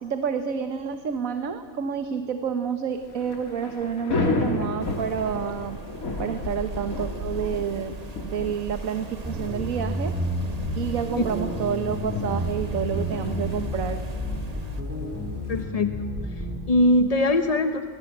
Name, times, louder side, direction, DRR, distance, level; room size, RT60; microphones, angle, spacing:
voice 1, 0.0-5.8 6.2-7.9 8.2-10.1 10.8-14.0, right 7 dB, 75° right, 8 dB, 1.5 m, -29 dB
Thunder / Rain, 3.0-15.6, left 3 dB, 85° left, 2.7 m, -33 dB
sound 1, 4.8-14.8, right 3 dB, 30° right, 1.1 m, -40 dB
sound 2, 9.2-16.6, equal, 10° right, 4.7 m, -30 dB
voice 2, 15.5-17.9, left 1 dB, 35° left, 7 dB, 0.8 m, -22 dB
27.5 x 22.0 x 8.5 m, 2.2 s
omnidirectional pair, 1.4 m